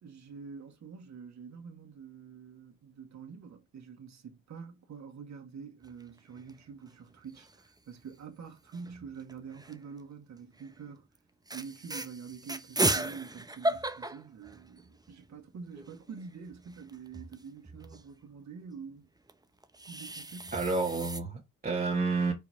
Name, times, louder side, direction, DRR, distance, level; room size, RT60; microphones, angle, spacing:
voice 1, 0.0-11.1 11.5-19.1 19.9-20.6, right 6 dB, 55° right, 2.3 m, -46 dB
sound 1, 5.8-6.5 6.9-7.0 7.2-7.8 8.7-9.9 10.5-10.8 11.1-11.2 11.5-15.1 15.5-15.6 15.7-18.0 19.3-21.2, right 2 dB, 10° right, 1.0 m, -35 dB
voice 2, 20.5-22.3, right 3 dB, 25° right, 1.8 m, -30 dB
5.5 x 4.7 x 4.5 m
cardioid pair, 80°, 33 cm